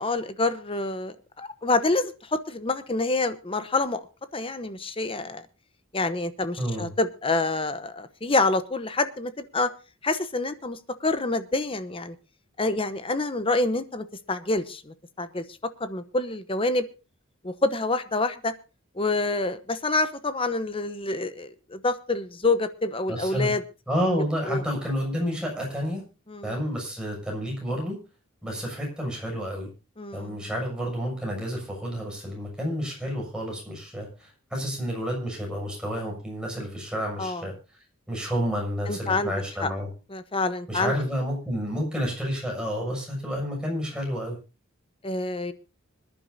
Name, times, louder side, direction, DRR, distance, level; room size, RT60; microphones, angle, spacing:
voice 1, 0.0-4.0 4.3-5.4 5.9-9.7 10.0-12.2 12.6-15.4 15.8-16.8 17.4-18.5 19.0-23.6 24.5-24.6 26.3-26.6 30.0-30.4 37.2-37.4 38.9-39.3 39.6-39.7 40.1-40.9 45.0-45.5, left 2 dB, 25° left, 12 dB, 1.0 m, -27 dB
voice 2, 6.6-6.9 23.1-23.5 23.9-26.0 26.4-28.0 28.4-29.7 30.1-37.5 38.1-39.9 40.7-44.4, equal, 5° right, -2 dB, 7.0 m, -30 dB
26.0 x 11.0 x 2.7 m, 0.32 s
head